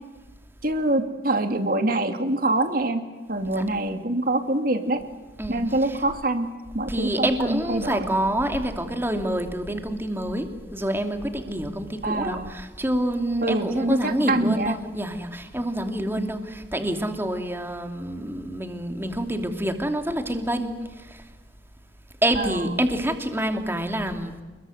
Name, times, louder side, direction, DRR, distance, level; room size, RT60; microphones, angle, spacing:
voice 1, 0.6-3.0 3.3-5.0 5.5-6.5 6.7-8.1 12.0-12.5 13.4-14.7 16.2-16.3 22.4-22.5, right 2 dB, 55° right, 7 dB, 2.6 m, -25 dB
voice 2, 5.4-6.0 6.9-21.3 22.2-24.3, right 1 dB, 15° right, 5 dB, 2.9 m, -27 dB
29.0 x 22.0 x 8.0 m, 1.2 s
head